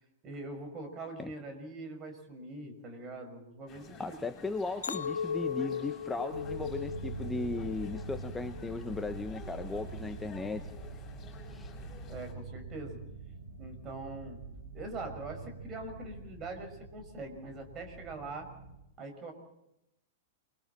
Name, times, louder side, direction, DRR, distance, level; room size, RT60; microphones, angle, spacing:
voice 1, 0.2-4.2 12.1-13.0 13.6-14.4 14.7-18.5 19.0-19.3, right 2 dB, 30° right, 5 dB, 5.7 m, -43 dB
sound 1, 3.7-12.3, left 5 dB, 30° left, 6.9 m, -52 dB
voice 2, 4.0-10.6 11.5-11.7, left 3 dB, 10° left, 9 dB, 1.1 m, -37 dB
Chink clink, 4.8-9.2 9.6-10.1, left 7 dB, 70° left, 0.8 m, -38 dB
sound 2, 6.3-18.8, right 3 dB, 65° right, 5.4 m, -44 dB
29.0 x 22.5 x 4.3 m, 0.82 s
figure-of-eight pair, 100°, 0 cm